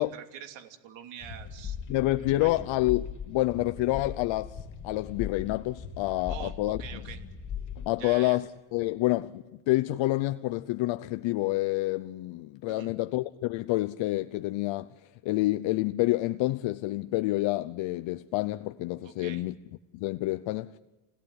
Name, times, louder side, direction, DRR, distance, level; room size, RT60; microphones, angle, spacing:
voice 1, 0.0-2.6 6.3-7.2 8.0-8.4 12.7-12.9 19.0-19.4, right 10 dB, 65° right, 3.1 m, -45 dB
sound 1, 1.2-8.0, left 7 dB, 40° left, 3.4 m, -39 dB
voice 2, 1.9-6.8 7.8-8.4 8.7-14.9 15.2-19.5 19.9-20.8, left 18 dB, 70° left, 0.9 m, -28 dB
29.0 x 18.0 x 10.0 m
cardioid pair, 105°, 47 cm